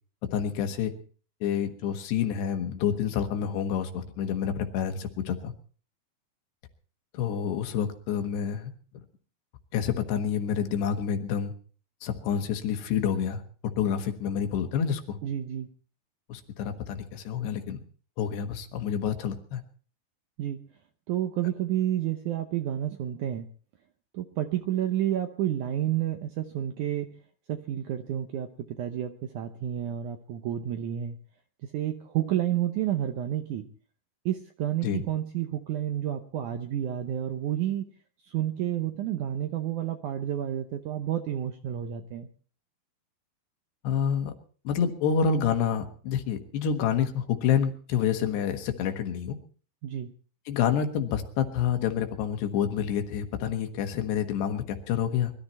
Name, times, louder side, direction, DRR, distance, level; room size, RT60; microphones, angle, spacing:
voice 1, 0.3-0.9 1.4-5.5 7.1-9.0 9.7-11.5 12.0-15.2 16.3-17.8 18.2-19.6 34.8-35.0 43.8-44.3 44.7-49.4 50.5-55.3, left 8 dB, 80° left, 7 dB, 3.6 m, -28 dB
voice 2, 15.2-15.7 20.4-20.6 21.1-23.4 24.1-27.1 27.5-28.5 28.8-31.2 31.7-33.6 34.2-37.9 38.2-42.3 49.8-50.1, right 11 dB, 90° right, 7 dB, 1.7 m, -30 dB
22.0 x 13.0 x 4.3 m, 0.42 s
omnidirectional pair, 4.9 m